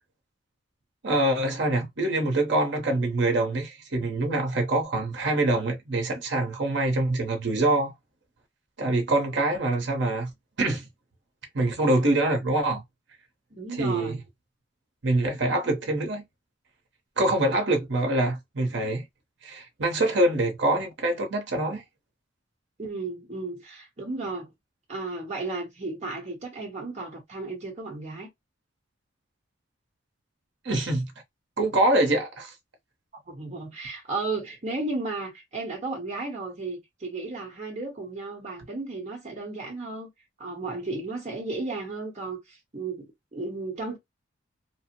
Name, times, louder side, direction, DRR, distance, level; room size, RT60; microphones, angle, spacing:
voice 1, 1.0-7.9 8.8-10.3 10.6-10.9 11.5-12.8 13.8-14.2 15.0-16.2 17.2-19.0 19.4-21.8 30.6-31.1 31.6-32.5, right 2 dB, 60° right, 0.9 m, -25 dB
voice 2, 13.5-14.2 22.8-24.5 24.9-28.3 33.3-40.1 40.4-44.0, right 3 dB, 35° right, 0.9 m, -34 dB
2.9 x 2.0 x 2.9 m
head